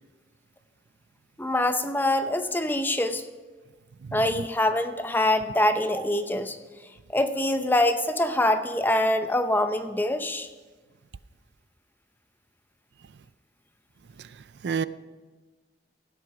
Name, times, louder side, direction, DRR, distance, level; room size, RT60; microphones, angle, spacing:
voice 1, 1.4-3.2 4.1-6.6 7.1-10.5, left 1 dB, 10° left, 8 dB, 0.6 m, -24 dB
voice 2, 4.0-4.4 14.2-14.3 14.6-14.9, right 6 dB, 75° right, 16 dB, 0.4 m, -30 dB
16.5 x 7.9 x 5.9 m, 1.3 s
head